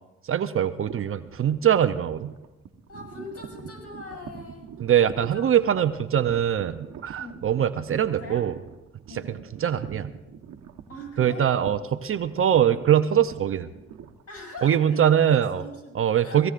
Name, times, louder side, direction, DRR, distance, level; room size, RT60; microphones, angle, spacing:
voice 1, 0.3-2.3 4.8-8.5 9.1-10.1 11.2-13.7 14.6-15.6 15.9-16.5, right 9 dB, 45° right, 11 dB, 0.6 m, -22 dB
sound 1, 0.9-15.0, right 7 dB, 60° right, 1.2 m, -44 dB
voice 2, 2.9-4.7 5.1-5.5 7.2-7.5 8.1-8.5 9.1-9.5 10.9-11.5 14.3-16.5, left 2 dB, 50° left, -1 dB, 7.2 m, -41 dB
25.0 x 17.5 x 2.5 m, 1.0 s
cardioid pair, 90°, 30 cm